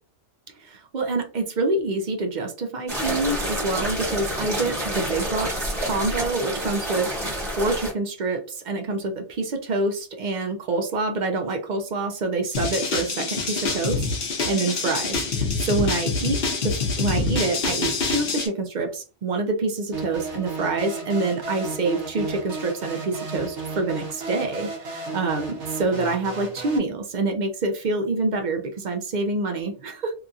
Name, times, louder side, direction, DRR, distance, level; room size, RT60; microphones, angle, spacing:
voice 1, 0.6-7.3 7.5-14.1 14.4-30.1, right 3 dB, 55° right, 5 dB, 0.5 m, -26 dB
sound 1, 2.9-7.9, equal, 35° right, 1.4 m, -28 dB
sound 2, 12.5-18.5, left 4 dB, 55° left, 0.9 m, -26 dB
sound 3, 19.9-26.8, right 3 dB, 75° right, 1.0 m, -34 dB
2.8 x 2.6 x 2.3 m, 0.35 s
omnidirectional pair, 1.2 m